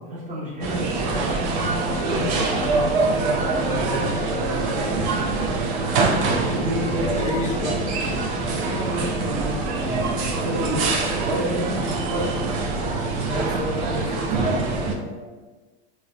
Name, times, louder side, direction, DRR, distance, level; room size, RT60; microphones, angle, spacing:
voice 1, 0.0-5.5 5.9-7.3 8.6-10.1 10.4-10.9 11.2-12.5, equal, 25° right, -5 dB, 1.0 m, -31 dB
sound 1, 0.6-15.0, right 3 dB, 55° right, 0.6 m, -24 dB
voice 2, 7.2-7.8 13.3-15.3, left 2 dB, 25° left, 0 dB, 0.5 m, -31 dB
2.2 x 2.1 x 3.6 m, 1.2 s
supercardioid pair, 120°, 32 cm